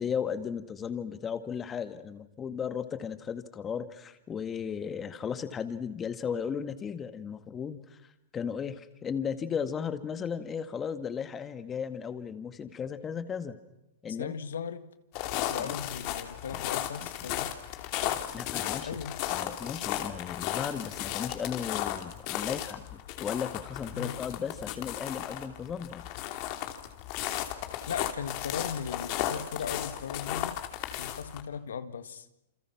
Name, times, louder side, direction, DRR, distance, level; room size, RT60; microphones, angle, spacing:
voice 1, 0.0-13.6 14.0-14.3 15.6-15.8 16.5-16.6 18.3-19.0 19.3-26.1, left 7 dB, 20° left, 1.9 m, -35 dB
voice 2, 14.2-14.9 15.5-17.6 18.8-19.2 23.9-24.2 27.9-30.6 31.0-32.3, left 7 dB, 90° left, 1.8 m, -37 dB
sound 1, 15.1-31.4, left 13 dB, 45° left, 3.0 m, -35 dB
29.0 x 27.5 x 6.0 m
hypercardioid pair, 135°, 0 cm